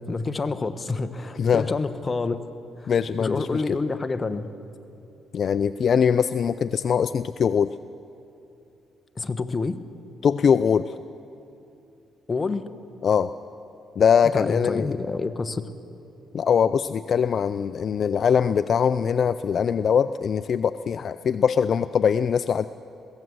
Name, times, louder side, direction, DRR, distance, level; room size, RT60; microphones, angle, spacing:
voice 1, 0.0-2.4 3.2-4.4 9.2-9.8 12.3-12.6 14.3-15.6, left 3 dB, 30° left, 10 dB, 1.1 m, -27 dB
voice 2, 1.4-1.7 2.9-3.6 5.3-7.7 10.2-10.9 13.0-13.3 14.0-14.9 16.3-22.7, left 7 dB, 55° left, 13 dB, 0.4 m, -22 dB
22.0 x 16.5 x 7.9 m, 2.7 s
cardioid pair, 90°, 0 cm